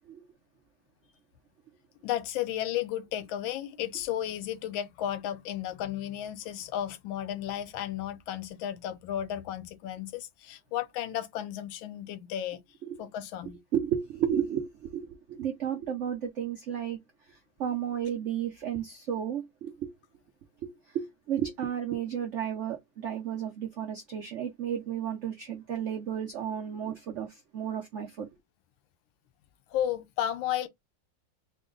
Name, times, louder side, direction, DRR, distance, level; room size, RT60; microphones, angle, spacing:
voice 1, 2.0-12.6 13.0-13.6 29.7-30.7, left 11 dB, 80° left, 1.4 m, -33 dB
voice 2, 13.7-17.0 17.3-19.9 20.6-28.3, right 9 dB, 70° right, 0.7 m, -33 dB
4.0 x 2.2 x 3.7 m
omnidirectional pair, 2.1 m